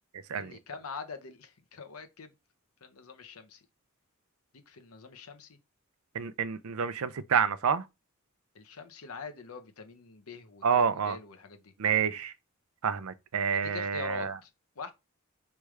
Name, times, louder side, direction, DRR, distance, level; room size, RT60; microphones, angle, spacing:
voice 1, 0.3-2.3 2.8-3.6 4.5-5.6 8.5-11.7 13.5-14.5 14.8-14.9, left 4 dB, 85° left, 0.8 m, -44 dB
voice 2, 6.1-7.8 10.6-11.2 11.8-12.3 12.8-14.4, right 7 dB, 80° right, 0.5 m, -28 dB
4.8 x 3.3 x 3.2 m
head